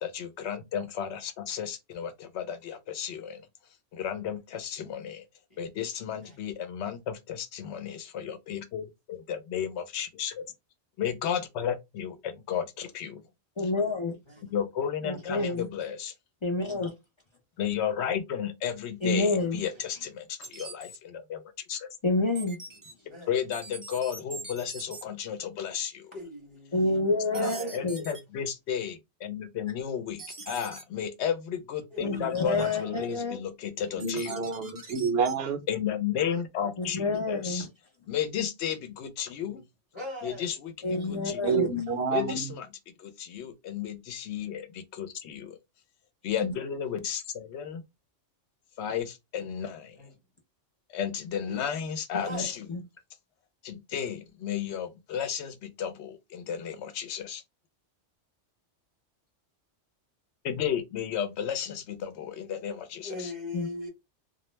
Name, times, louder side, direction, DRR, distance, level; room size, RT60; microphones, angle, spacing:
voice 1, 0.0-3.5 3.9-5.3 5.6-10.5 11.0-13.2 14.4-16.1 17.6-21.4 21.7-21.9 23.3-26.1 27.3-34.4 35.7-37.7 38.1-39.6 40.2-40.7 41.1-41.7 42.1-42.7 43.0-45.6 46.2-47.8 48.8-50.0 50.9-52.7 53.6-57.4 60.4-63.3, left 8 dB, 75° left, 0.8 m, -33 dB
voice 2, 13.6-14.2 15.0-15.7 16.4-16.9 19.0-19.6 22.0-22.6 26.7-28.0 32.0-33.4 36.8-37.6 40.8-41.7 46.4-46.5 52.3-52.8 63.5-63.7, left 2 dB, 55° left, 0.3 m, -28 dB
sound 1, 20.4-21.0 22.4-22.9 23.5-25.0 27.3-28.2 30.2-30.8 34.0-35.3, right 3 dB, 30° right, 0.4 m, -43 dB
voice 3, 23.0-23.3 26.1-28.0 31.9-32.9 39.4-39.6 39.9-40.5 49.4-49.5 50.0-50.2 51.5-51.9 52.2-52.5 63.0-63.9, left 1 dB, 30° left, 0.8 m, -41 dB
voice 4, 34.0-35.6 41.4-42.5, right 5 dB, 65° right, 0.7 m, -28 dB
2.2 x 2.1 x 3.0 m
omnidirectional pair, 1.2 m